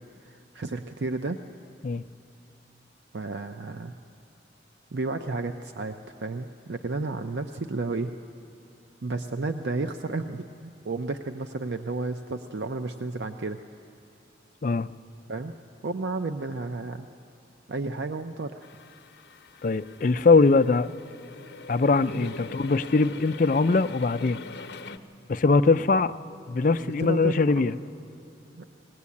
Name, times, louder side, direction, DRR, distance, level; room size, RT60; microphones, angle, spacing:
voice 1, 0.2-1.4 3.1-4.0 4.9-8.1 9.0-13.6 15.3-15.5 15.8-17.1 17.7-18.7 22.1-22.3 26.8-27.7 28.6-28.7, right 3 dB, 75° right, 7 dB, 0.6 m, -32 dB
sound 1, 18.6-25.0, left 3 dB, 65° left, 0.8 m, -43 dB
voice 2, 19.6-20.9 21.7-24.4 25.3-26.1 26.5-27.8, left 3 dB, 45° left, 11 dB, 0.4 m, -22 dB
19.5 x 18.0 x 8.4 m, 2.6 s
head